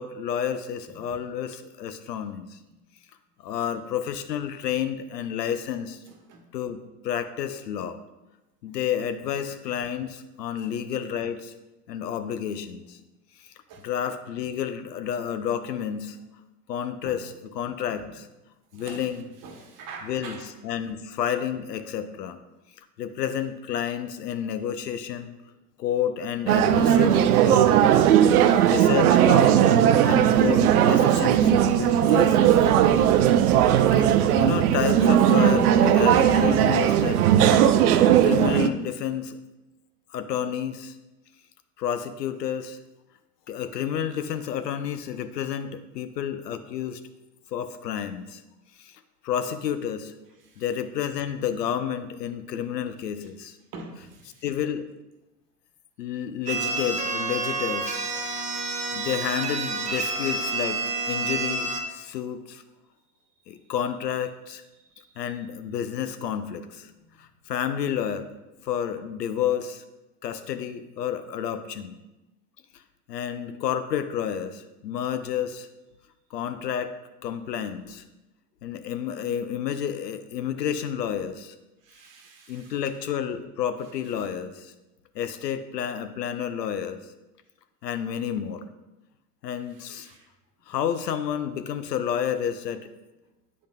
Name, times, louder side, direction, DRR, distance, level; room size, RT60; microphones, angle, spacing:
voice 1, 0.0-2.6 3.4-6.0 6.5-8.0 8.6-11.5 11.9-13.0 13.4-13.5 13.8-16.2 16.7-18.3 18.7-19.3 20.0-22.4 23.0-25.3 25.8-28.1 28.4-29.6 30.0-32.7 34.0-34.1 34.4-37.4 38.2-39.4 40.1-40.9 41.8-42.8 43.5-47.0 47.5-48.4 48.8-48.9 49.2-50.1 50.6-53.6 54.4-54.8 56.0-58.0 58.5-58.6 58.9-62.6 63.5-64.6 65.2-66.9 67.2-68.3 68.6-69.8 70.2-72.0 73.1-75.7 76.3-77.0 77.2-78.0 78.6-81.5 82.5-84.7 85.1-87.0 87.8-88.6 89.4-90.1 90.7-92.9, left 9 dB, 80° left, 10 dB, 0.7 m, -30 dB
voice 2, 18.7-19.1 19.4-20.5 28.1-28.7 50.5-50.6 53.7-54.4 60.0-60.1 81.8-82.7 89.9-90.3, right 4 dB, 40° right, 4 dB, 1.2 m, -44 dB
sound 1, 26.5-38.7, right 10 dB, 65° right, 0.6 m, -18 dB
sound 2, 56.5-61.8, right 3 dB, 15° right, 0.7 m, -29 dB
8.6 x 5.1 x 2.2 m, 1.0 s
hypercardioid pair, 90°, 48 cm